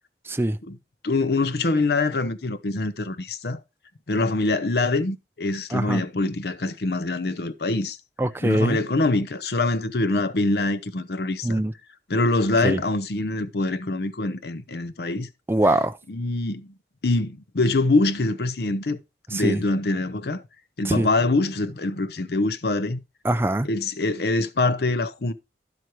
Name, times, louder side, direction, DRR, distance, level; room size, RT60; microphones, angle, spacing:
voice 1, 0.3-0.6 5.7-6.0 8.2-8.8 11.4-11.7 12.6-12.8 15.5-16.0 19.3-19.6 20.8-21.1 23.2-23.7, right 1 dB, 15° right, 0.4 m, -23 dB
voice 2, 1.0-3.6 4.1-8.0 8.4-11.6 12.1-15.3 16.1-16.7 17.0-19.0 19.3-20.4 20.8-23.0 23.6-25.3, left 2 dB, 65° left, 0.7 m, -24 dB
11.0 x 7.8 x 3.0 m
head